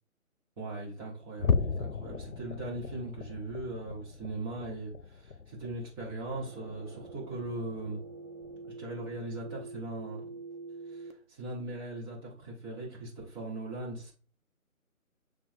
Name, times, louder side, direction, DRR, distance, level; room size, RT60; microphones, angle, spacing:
voice 1, 0.6-8.0 8.8-10.2 10.9-14.1, right 2 dB, 15° right, 1.9 m, -39 dB
sound 1, 1.4-8.1 8.4-8.7 9.1-9.3 9.8-10.0, left 5 dB, 85° left, 0.7 m, -36 dB
sound 2, 6.3-11.1, right 3 dB, 75° right, 1.4 m, -45 dB
8.7 x 3.5 x 3.3 m
figure-of-eight pair, 150°, 43 cm